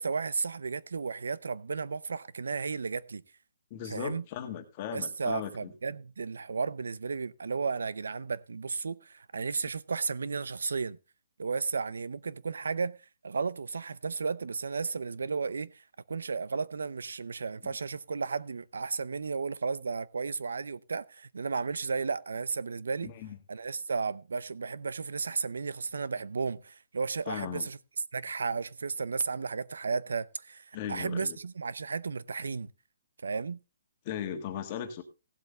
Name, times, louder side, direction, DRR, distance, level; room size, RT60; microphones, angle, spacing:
voice 1, 0.0-3.2 3.9-4.2 4.9-11.0 11.4-13.0 13.2-23.1 23.5-27.8 28.1-32.7 33.2-33.6, right 5 dB, 90° right, 0.6 m, -34 dB
voice 2, 3.7-5.7 17.6-17.7 23.0-23.4 27.3-27.7 30.7-31.4 34.0-35.0, left 9 dB, 30° left, 1.6 m, -37 dB
16.0 x 7.9 x 3.3 m
hypercardioid pair, 165°, 0 cm